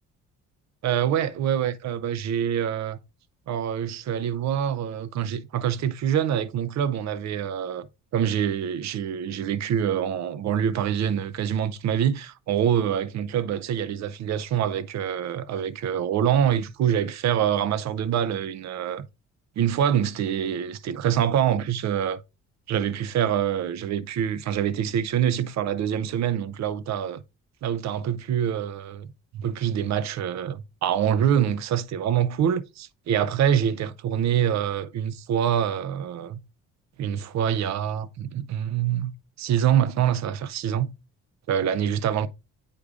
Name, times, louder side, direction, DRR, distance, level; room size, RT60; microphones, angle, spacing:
voice 1, 0.8-3.0 3.5-7.9 8.1-19.1 19.6-22.2 22.7-27.2 27.6-29.1 29.3-36.4 37.0-40.9 41.5-42.3, right 9 dB, 65° right, 0.5 m, -25 dB
8.5 x 4.7 x 2.4 m
cardioid pair, 90°, 30 cm